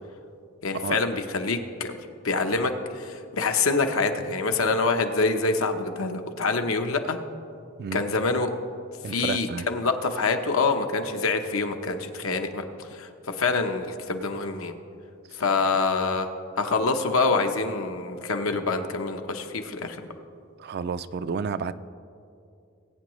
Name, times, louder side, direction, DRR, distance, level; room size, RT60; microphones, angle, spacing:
voice 1, 0.6-2.0 2.2-7.2 7.9-8.5 9.1-14.7 15.4-16.3 16.6-20.0, left 4 dB, 85° left, 6 dB, 0.8 m, -26 dB
voice 2, 9.0-9.7 20.6-21.7, right 6 dB, 50° right, 14 dB, 0.3 m, -31 dB
19.5 x 8.7 x 3.1 m, 2.6 s
head